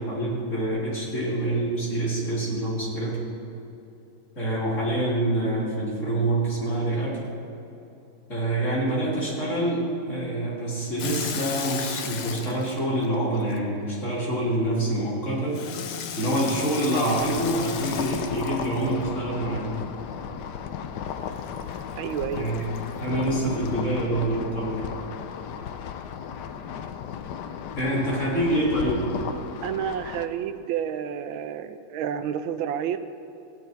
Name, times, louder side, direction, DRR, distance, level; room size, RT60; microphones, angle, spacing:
voice 1, 0.0-3.2 4.4-7.2 8.3-15.6 16.2-19.8 22.4-22.7 23.0-24.8 27.8-29.0, right 1 dB, 35° left, -7 dB, 3.7 m, -26 dB
Water tap faucet / Sink (filling or washing), 11.0-14.0 15.5-19.3 21.3-23.8, left 7 dB, 90° left, 1.7 m, -36 dB
sound 1, 17.1-30.3, left 8 dB, 70° left, 1.1 m, -35 dB
voice 2, 22.0-22.6 29.6-33.0, right 9 dB, 80° right, 10 dB, 1.4 m, -30 dB
16.0 x 9.4 x 4.6 m, 2.9 s
omnidirectional pair, 2.3 m